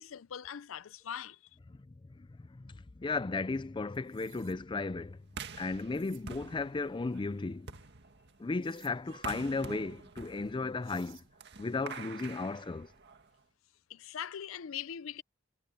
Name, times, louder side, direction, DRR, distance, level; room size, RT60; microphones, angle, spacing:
voice 1, 0.0-1.4 13.9-15.2, left 9 dB, 80° left, 0.5 m, -41 dB
voice 2, 2.2-5.2 5.6-7.7 8.4-11.2 11.6-12.9, left 3 dB, 25° left, 0.4 m, -35 dB
sound 1, 3.9-4.6 5.8-6.3 8.6-8.9 10.4-10.5 10.8-11.3, right 15 dB, 80° right, 6.0 m, -59 dB
sound 2, 5.3-13.4, right 5 dB, 55° right, 2.0 m, -48 dB
head